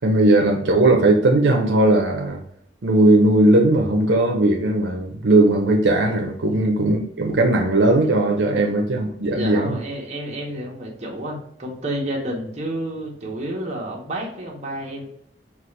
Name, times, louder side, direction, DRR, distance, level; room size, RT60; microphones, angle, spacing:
voice 1, 0.0-2.4 2.8-9.8, right 2 dB, 75° right, 1 dB, 0.7 m, -18 dB
voice 2, 9.3-15.1, right 1 dB, 40° right, -2 dB, 1.1 m, -30 dB
5.8 x 2.4 x 3.2 m, 0.71 s
head